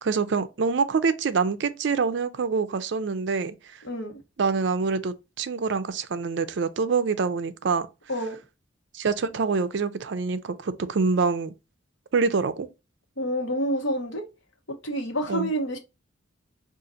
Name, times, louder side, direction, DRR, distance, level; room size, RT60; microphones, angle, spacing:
voice 1, 0.0-3.5 4.4-7.9 8.9-11.5 12.1-12.7 15.3-15.5, right 4 dB, 60° right, 0.4 m, -25 dB
voice 2, 13.2-14.2 14.8-15.8, equal, 70° left, 1.1 m, -28 dB
4.9 x 2.5 x 2.7 m
head